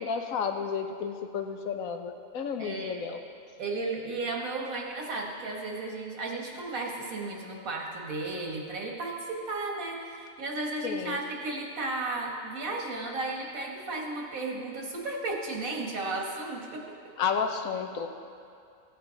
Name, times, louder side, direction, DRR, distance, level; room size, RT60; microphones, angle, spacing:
voice 1, 0.0-3.2 10.8-11.2 17.2-18.1, left 6 dB, 90° left, 6 dB, 1.3 m, -32 dB
voice 2, 2.6-3.0 3.6-16.8, right 2 dB, 85° right, 0 dB, 1.9 m, -34 dB
15.5 x 8.9 x 4.0 m, 2.5 s
omnidirectional pair, 1.4 m